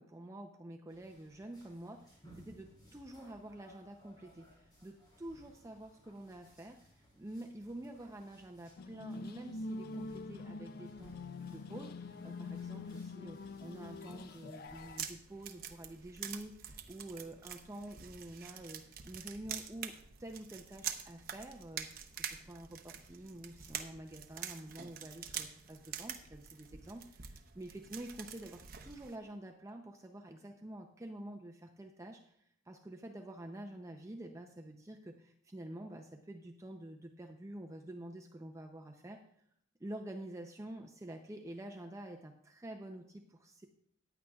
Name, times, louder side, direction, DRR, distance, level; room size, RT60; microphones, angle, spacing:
voice 1, 0.0-11.1 11.4-39.2 39.8-43.7, right 1 dB, 15° right, 3 dB, 0.6 m, -48 dB
sound 1, 0.9-15.1, right 1 dB, 25° left, 3.9 m, -63 dB
sound 2, 8.8-15.0, left 3 dB, 50° left, 0.4 m, -45 dB
sound 3, 14.7-29.2, right 8 dB, 50° right, 0.8 m, -46 dB
15.0 x 9.8 x 2.4 m, 0.69 s
head